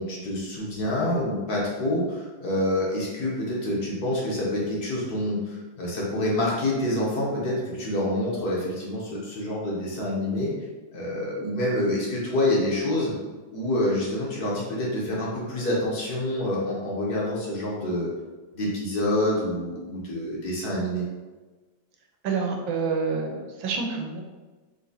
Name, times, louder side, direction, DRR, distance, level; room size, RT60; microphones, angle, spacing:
voice 1, 0.0-10.5 10.9-13.1 13.5-18.1 18.5-21.0, left 1 dB, 55° left, -5 dB, 1.4 m, -27 dB
voice 2, 22.2-24.2, right 5 dB, 75° right, 2 dB, 1.3 m, -28 dB
4.0 x 3.2 x 4.0 m, 1.3 s
omnidirectional pair, 2.2 m